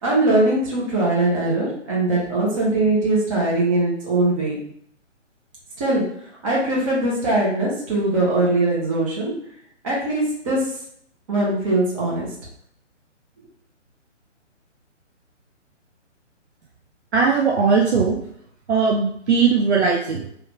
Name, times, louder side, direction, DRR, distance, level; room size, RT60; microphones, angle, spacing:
voice 1, 0.0-4.6 5.8-6.0 6.4-9.3 9.8-10.7 11.3-12.3, right 2 dB, 25° right, -5 dB, 1.2 m, -21 dB
voice 2, 17.1-18.2 18.7-20.3, right 5 dB, 60° right, -1 dB, 0.6 m, -19 dB
3.1 x 2.7 x 3.1 m, 0.66 s
figure-of-eight pair, 145°, 37 cm